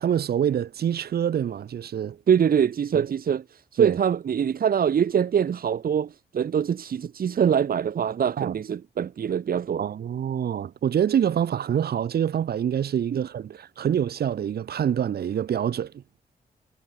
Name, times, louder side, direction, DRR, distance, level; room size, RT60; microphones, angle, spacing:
voice 1, 0.0-2.2 2.9-3.0 3.8-4.0 8.4-8.5 9.8-16.0, right 9 dB, 85° right, 4.4 m, -26 dB
voice 2, 2.3-9.8 13.1-13.2, right 8 dB, 70° right, 1.9 m, -24 dB
cardioid pair, 95°, 16 cm